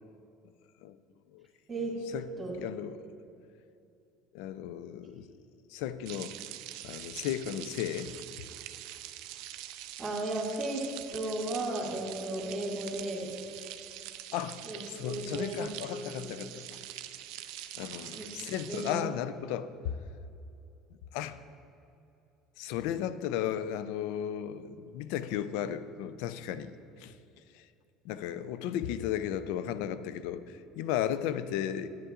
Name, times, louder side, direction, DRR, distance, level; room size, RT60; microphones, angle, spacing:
voice 1, 2.1-3.0 4.3-5.4 5.7-6.4 6.8-8.1 14.3-16.8 17.8-20.0 21.1-21.4 22.6-27.2 27.5-27.7 28.0-31.9, left 10 dB, 75° left, 13 dB, 0.3 m, -35 dB
sound 1, 6.1-19.0, right 13 dB, 70° right, 0.4 m, -44 dB
voice 2, 10.0-10.8 11.1-13.3 14.6-15.6 15.9-16.3 18.1-18.2 18.7-19.0, right 2 dB, 25° right, -3 dB, 2.0 m, -35 dB
10.0 x 8.9 x 2.4 m, 2.6 s
hypercardioid pair, 80°, 0 cm